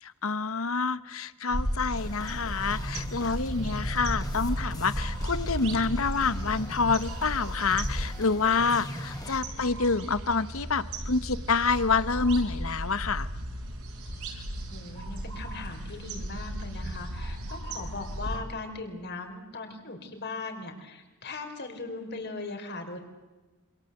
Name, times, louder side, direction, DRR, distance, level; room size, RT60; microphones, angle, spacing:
voice 1, 0.0-13.3, left 4 dB, 65° left, 16 dB, 1.0 m, -27 dB
sound 1, 1.5-18.4, right 1 dB, 75° right, 5.9 m, -35 dB
sound 2, 1.9-9.4, equal, 15° left, 3.0 m, -41 dB
voice 2, 14.1-23.0, left 3 dB, 50° left, 5 dB, 4.3 m, -39 dB
27.0 x 26.0 x 8.0 m, 1.2 s
head